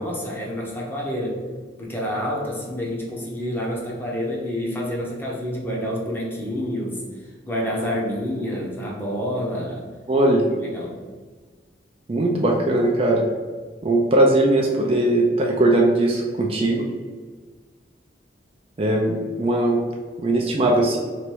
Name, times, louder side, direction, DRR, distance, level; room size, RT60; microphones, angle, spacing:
voice 1, 0.0-1.4 1.8-7.1 7.4-9.9 10.5-11.0, equal, 10° left, -3 dB, 0.7 m, -28 dB
voice 2, 10.1-10.5 12.1-13.3 13.8-16.9 18.8-19.8 20.2-21.0, right 1 dB, 30° right, 0 dB, 0.4 m, -19 dB
3.2 x 2.6 x 4.4 m, 1.4 s
head